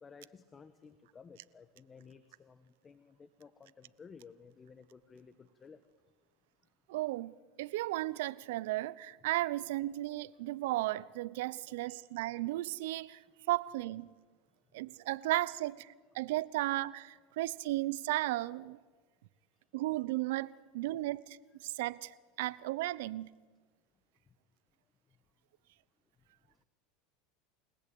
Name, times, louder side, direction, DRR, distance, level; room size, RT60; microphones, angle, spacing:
voice 1, 0.0-5.8 11.8-12.0, left 5 dB, 25° left, 11 dB, 1.3 m, -55 dB
voice 2, 6.9-13.2 13.5-14.1 14.7-15.9 16.1-18.8 19.7-21.4 21.6-23.3, right 17 dB, 75° right, 20 dB, 0.8 m, -35 dB
29.0 x 17.5 x 8.6 m, 1.4 s
supercardioid pair, 110°, 0 cm